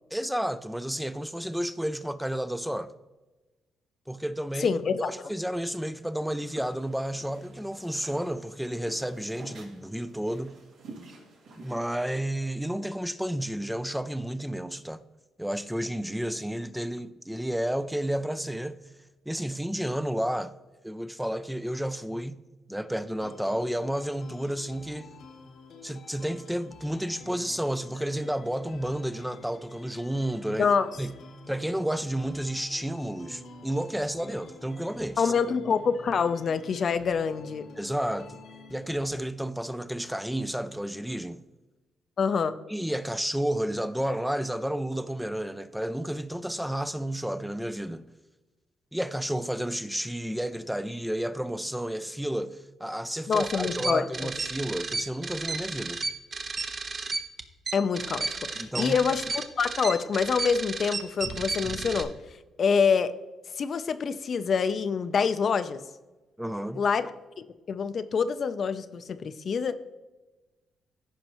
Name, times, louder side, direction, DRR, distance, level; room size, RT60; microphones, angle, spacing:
voice 1, 0.1-2.9 4.1-10.6 11.6-15.0 15.4-18.8 19.3-20.5 20.8-22.4 22.7-25.1 25.8-30.7 31.0-31.1 31.5-35.3 37.8-38.4 38.7-41.4 42.7-48.1 48.9-56.0 58.6-59.0 66.4-66.8, right 1 dB, 5° right, 0.4 m, -31 dB
voice 2, 4.6-5.1 30.6-30.9 35.2-37.7 42.2-42.6 53.3-54.3 57.7-62.1 62.6-63.1 63.6-65.8 66.8-67.1 67.7-69.8, left 6 dB, 50° left, 0.5 m, -26 dB
sound 1, 6.1-11.9, right 3 dB, 85° right, 2.8 m, -50 dB
sound 2, 23.2-39.2, left 4 dB, 75° left, 1.2 m, -49 dB
sound 3, 53.3-62.0, right 4 dB, 40° right, 0.8 m, -33 dB
14.5 x 5.3 x 3.0 m
cardioid pair, 90°, 0 cm